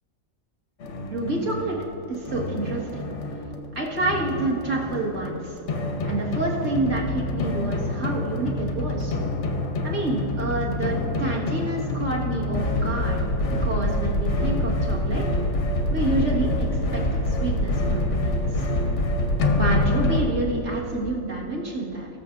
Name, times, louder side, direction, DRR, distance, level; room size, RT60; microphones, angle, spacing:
sound 1, 0.8-20.2, left 1 dB, 55° left, 0.9 m, -26 dB
voice 1, 1.1-1.8 2.1-3.1 3.8-5.6 6.0-9.2 9.8-13.2 13.6-15.3 15.9-18.7 19.5-22.1, right 2 dB, 45° right, -4 dB, 1.9 m, -28 dB
19.5 x 6.8 x 2.5 m, 2.8 s
omnidirectional pair, 1.9 m